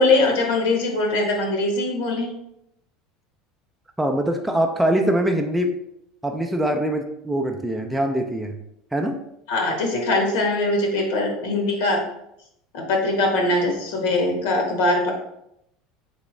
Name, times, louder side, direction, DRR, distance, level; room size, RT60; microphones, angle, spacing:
voice 1, 0.0-2.3 9.5-12.0 12.7-15.1, left 2 dB, 85° left, 1 dB, 1.2 m, -21 dB
voice 2, 4.0-5.7 6.2-8.6 8.9-9.2, right 1 dB, 5° right, 3 dB, 0.3 m, -23 dB
3.9 x 3.4 x 3.1 m, 0.78 s
cardioid pair, 155°, 0 cm